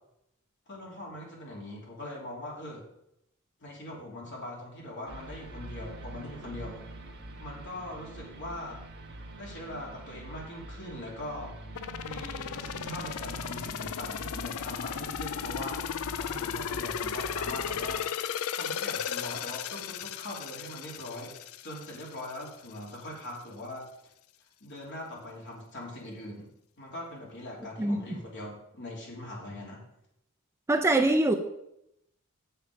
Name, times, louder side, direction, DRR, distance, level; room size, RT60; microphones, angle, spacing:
voice 1, 0.7-2.8 3.6-6.8 7.4-8.8 9.4-11.5 12.0-15.9 16.1-23.9 24.6-26.5 26.8-29.8, left 1 dB, 55° left, -3 dB, 3.0 m, -41 dB
sound 1, 5.1-18.0, right 2 dB, 55° right, 1.2 m, -44 dB
sound 2, 11.8-22.5 22.9-23.0, left 9 dB, 80° left, 0.4 m, -36 dB
voice 2, 27.8-28.2 30.7-31.3, right 2 dB, 15° right, 5 dB, 0.5 m, -24 dB
8.6 x 6.8 x 4.9 m, 0.81 s
head